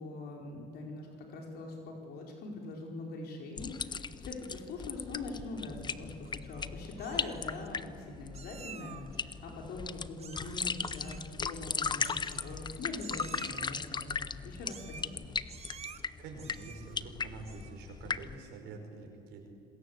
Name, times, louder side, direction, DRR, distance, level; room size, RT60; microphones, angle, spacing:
voice 1, 0.0-15.2, left 2 dB, 70° left, 1 dB, 4.7 m, -43 dB
sound 1, 3.6-18.4, left 5 dB, 25° left, 0.8 m, -38 dB
Meow, 6.2-6.7 7.0-7.7 8.3-9.2 10.2-10.6 10.8-11.3 12.0-12.7 13.0-13.7 14.6-15.2 15.5-16.0 16.4-17.0 17.4-17.8, right 7 dB, 40° right, 1.2 m, -50 dB
voice 2, 16.2-19.5, right 3 dB, 85° right, 3 dB, 5.2 m, -46 dB
27.0 x 21.0 x 8.2 m, 2.4 s
cardioid pair, 110°, 17 cm